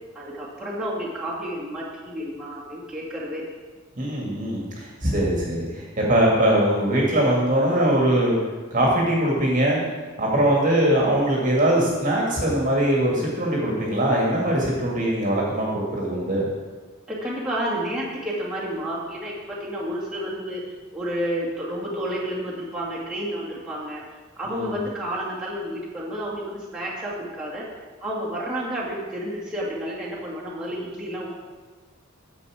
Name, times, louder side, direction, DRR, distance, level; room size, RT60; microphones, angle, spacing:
voice 1, 0.1-3.4 5.1-5.3 10.4-10.5 17.1-20.6 20.9-24.0 24.4-27.6 28.0-31.3, equal, 5° right, -8 dB, 2.1 m, -30 dB
voice 2, 4.0-8.3 8.7-9.8 10.2-16.4 24.5-24.7, right 1 dB, 35° right, -3 dB, 1.8 m, -21 dB
9.7 x 7.4 x 4.9 m, 1.4 s
head